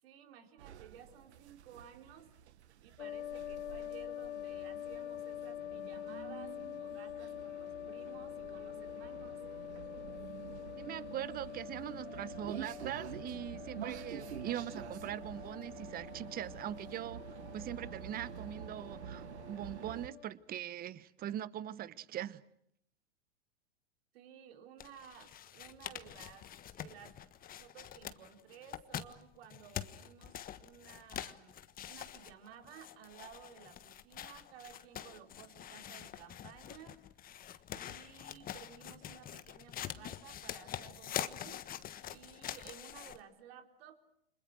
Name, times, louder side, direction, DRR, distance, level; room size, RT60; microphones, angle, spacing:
voice 1, 0.0-2.3 2.8-9.4 24.1-26.5 26.8-27.2 27.6-31.6 31.9-37.0 37.3-37.4 37.7-44.0, right 8 dB, 60° right, 4.1 m, -55 dB
sound 1, 0.6-20.1, right 10 dB, 75° right, 1.5 m, -49 dB
sound 2, 3.0-20.3, left 11 dB, 80° left, 1.1 m, -46 dB
voice 2, 10.8-22.4, right 11 dB, 25° right, 1.1 m, -42 dB
sound 3, 24.8-43.2, left 10 dB, 25° left, 1.4 m, -45 dB
29.5 x 26.0 x 6.3 m
hypercardioid pair, 115°, 34 cm